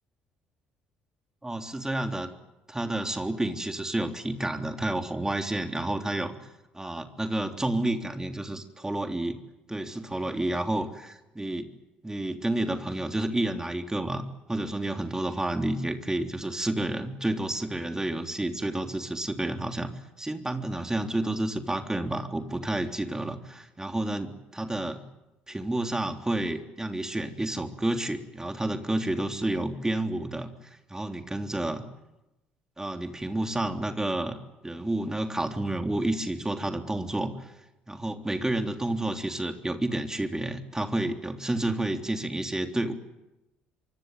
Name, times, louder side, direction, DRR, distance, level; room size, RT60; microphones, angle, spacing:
voice 1, 1.4-2.3 2.7-6.4 6.7-9.4 9.7-11.7 12.0-19.9 20.2-25.0 25.5-30.5 30.9-31.8 32.8-34.4 34.6-37.5 37.9-42.9, right 1 dB, 10° right, 6 dB, 3.4 m, -30 dB
25.0 x 24.5 x 9.4 m, 0.97 s
figure-of-eight pair, 50°, 5 cm